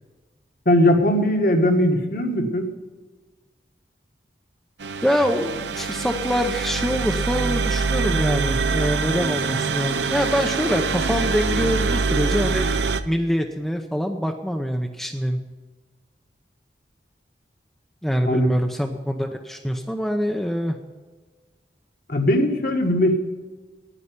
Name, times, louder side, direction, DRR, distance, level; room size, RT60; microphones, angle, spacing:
voice 1, 0.6-2.7 18.2-18.5 22.1-23.2, left 1 dB, 50° left, 3 dB, 1.7 m, -19 dB
sound 1, 4.8-13.0, right 4 dB, 80° right, 0.7 m, -24 dB
voice 2, 5.0-12.7 13.1-15.4 18.0-20.8, equal, ahead, 3 dB, 0.7 m, -24 dB
9.9 x 9.9 x 9.5 m, 1.3 s
head